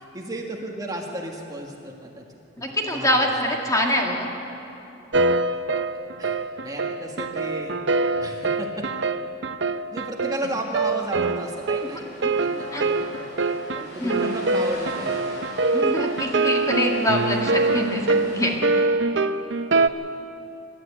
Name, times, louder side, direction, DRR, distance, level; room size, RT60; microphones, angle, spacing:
voice 1, 0.0-3.3 3.7-3.8 6.2-7.8 8.2-8.9 9.9-12.1 12.4-13.5 13.7-15.3 15.7-15.8 19.7-19.9, right 1 dB, 20° right, 0 dB, 1.7 m, -34 dB
voice 2, 2.6-4.3 12.4-12.5 12.7-12.9 14.0-14.3 15.7-18.9, left 1 dB, 20° left, 0 dB, 2.1 m, -25 dB
sound 1, 5.1-19.9, right 3 dB, 70° right, 0.7 m, -24 dB
sound 2, 10.4-18.6, left 1 dB, 80° left, 6.8 m, -42 dB
25.0 x 12.5 x 8.8 m, 2.9 s
head